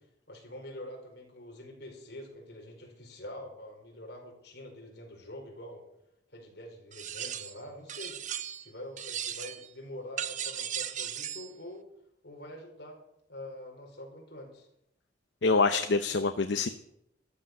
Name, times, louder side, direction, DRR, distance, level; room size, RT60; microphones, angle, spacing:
voice 1, 0.3-5.8 6.3-8.2 8.6-11.9 12.2-13.0 13.3-14.7, left 1 dB, 65° left, 1 dB, 4.9 m, -45 dB
sound 1, 6.9-7.6 7.9-8.7 9.0-9.7 10.2-11.5, right 9 dB, 45° right, 0.8 m, -37 dB
voice 2, 15.4-16.7, left 4 dB, 80° left, 9 dB, 0.8 m, -25 dB
13.5 x 12.0 x 6.7 m, 0.78 s
head